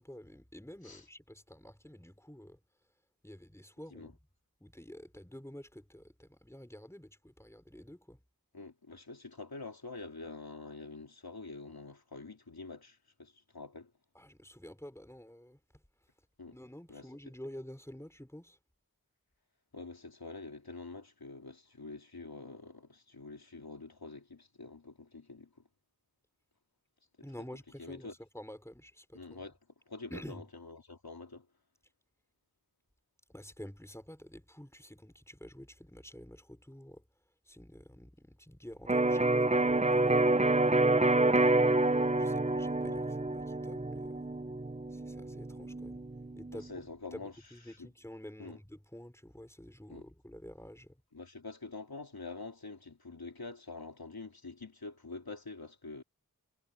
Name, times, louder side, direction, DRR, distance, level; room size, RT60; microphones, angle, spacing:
voice 1, 0.0-2.6 3.2-4.2 4.6-8.2 14.1-15.8 16.5-18.6 27.2-29.4 30.1-30.4 33.3-37.0 37.5-40.5 41.4-41.5 42.1-44.3 44.9-46.0 46.4-46.7 47.1-51.0, left 1 dB, 10° left, 3.8 m, -49 dB
voice 2, 8.5-13.9 16.4-16.6 16.9-17.1 19.7-25.5 27.8-28.1 29.1-29.6 29.9-31.5 42.8-43.0 46.5-47.3 47.8-47.9 48.4-48.6 49.9-50.0 51.1-56.0, left 3 dB, 85° left, 3.3 m, -46 dB
Electric guitar, 38.9-46.7, right 2 dB, 20° right, 0.8 m, -28 dB
wide cardioid pair, 45°, 36 cm